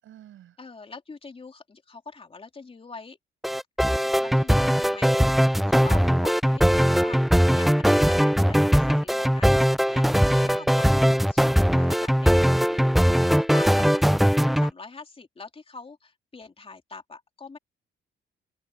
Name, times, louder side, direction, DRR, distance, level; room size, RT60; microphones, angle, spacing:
voice 1, 0.0-0.6, right 12 dB, 80° right, 7.4 m, -50 dB
voice 2, 0.6-3.2 4.2-14.3 14.6-17.6, left 4 dB, 30° left, 3.4 m, -43 dB
sound 1, 3.4-14.7, equal, ahead, 0.4 m, -20 dB
cardioid pair, 90°, 20 cm